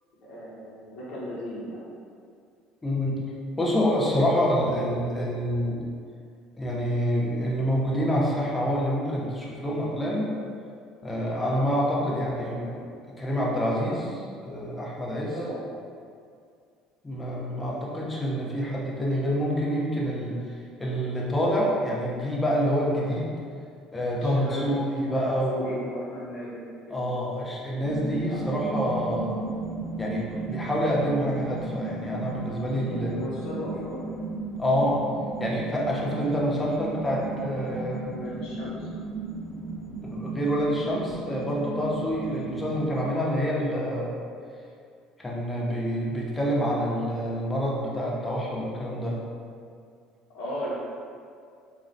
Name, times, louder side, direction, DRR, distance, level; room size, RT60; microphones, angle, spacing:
voice 1, 0.2-1.9 11.4-11.6 15.3-15.8 23.0-23.2 24.2-24.7 25.1-26.6 26.9-27.0 28.3-28.4 28.6-28.8 32.7-34.1 38.0-38.9 46.8-47.0 47.6-47.7 50.3-50.7, equal, 60° left, -7 dB, 0.7 m, -36 dB
voice 2, 2.8-3.2 3.6-5.8 6.6-10.3 11.0-12.8 13.2-15.3 17.0-23.4 23.9-25.7 26.9-29.4 30.0-33.1 34.6-35.0 35.4-38.1 40.0-44.1 45.2-49.2, equal, 20° left, -4 dB, 0.6 m, -27 dB
sound 1, 27.8-43.1, right 3 dB, 60° right, 0.7 m, -35 dB
2.3 x 2.0 x 2.6 m, 2.3 s
hypercardioid pair, 65°, 0 cm